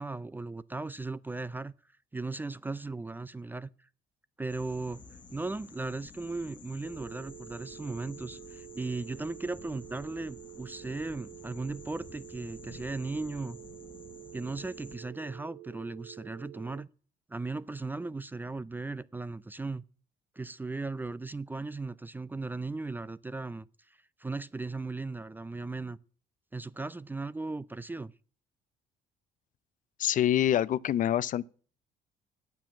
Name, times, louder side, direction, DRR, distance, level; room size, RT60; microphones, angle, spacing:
voice 1, 0.0-1.7 2.1-3.7 4.4-5.0 5.3-13.6 14.3-16.9 17.3-19.8 20.4-23.7 24.2-26.0 26.5-28.1, right 3 dB, 10° right, 0.4 m, -37 dB
sound 1, 4.5-15.0, left 4 dB, 30° left, 1.6 m, -51 dB
sound 2, 6.8-16.8, right 19 dB, 60° right, 0.5 m, -49 dB
voice 2, 30.0-31.5, left 11 dB, 50° left, 0.5 m, -26 dB
9.0 x 7.7 x 7.3 m
cardioid pair, 110°, 17 cm